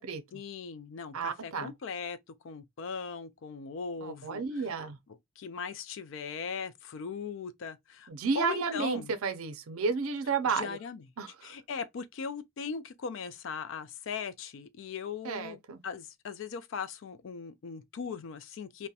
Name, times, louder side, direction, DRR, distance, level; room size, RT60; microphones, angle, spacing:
voice 1, 0.3-2.2 2.4-4.7 5.4-8.1 8.3-9.1 10.5-11.1 11.4-18.9, left 6 dB, 60° left, 0.3 m, -39 dB
voice 2, 1.1-1.7 4.0-5.0 8.1-10.8 11.2-11.5 15.2-15.8, right 5 dB, 75° right, 0.5 m, -32 dB
2.3 x 2.1 x 2.6 m
head